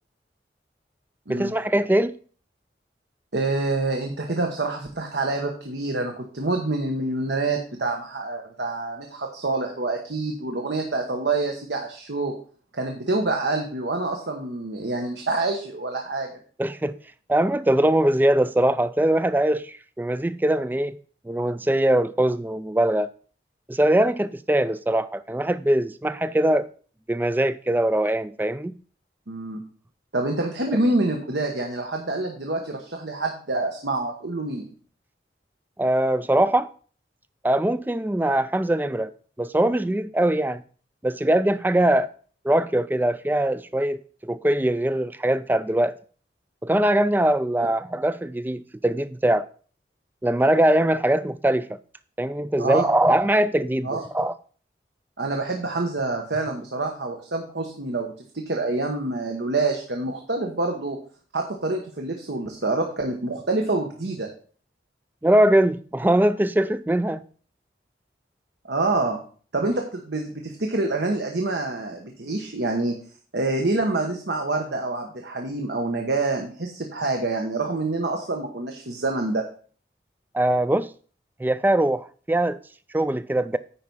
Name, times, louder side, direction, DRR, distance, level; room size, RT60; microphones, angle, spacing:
voice 1, 1.3-2.1 16.6-17.0 17.3-21.0 21.3-23.1 23.7-26.7 27.1-28.7 35.8-36.7 37.4-39.1 39.4-40.6 41.0-42.1 42.4-45.9 46.6-49.5 50.2-51.8 52.2-54.3 65.2-67.2 80.3-80.9 81.4-82.6 82.9-83.6, right 1 dB, 10° right, 0.3 m, -22 dB
voice 2, 3.3-12.3 12.7-16.3 29.3-29.6 30.1-34.7 52.6-52.9 53.8-54.0 55.2-61.0 61.3-64.3 68.6-69.2 69.5-72.9 73.3-79.4, right 2 dB, 75° right, 1.2 m, -27 dB
9.8 x 4.6 x 5.5 m
head